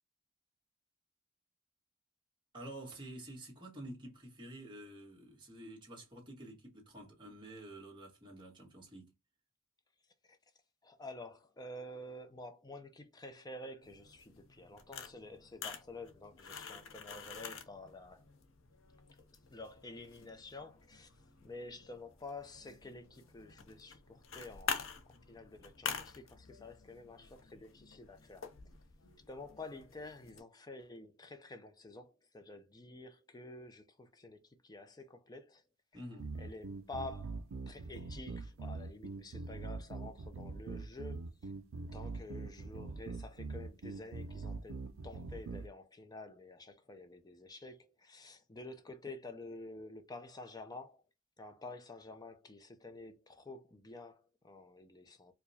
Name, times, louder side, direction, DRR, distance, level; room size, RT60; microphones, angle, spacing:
voice 1, 2.5-9.1 35.9-36.3, right 1 dB, 25° right, 1.4 m, -49 dB
voice 2, 10.8-18.3 19.5-21.1 21.4-24.9 25.3-28.5 29.3-35.6 36.4-41.5 41.9-51.0 51.4-55.3, left 2 dB, 20° left, 0.6 m, -49 dB
sound 1, 13.8-30.4, left 6 dB, 75° left, 0.7 m, -47 dB
sound 2, 36.2-45.7, right 3 dB, 80° right, 0.5 m, -43 dB
4.7 x 2.2 x 2.7 m
head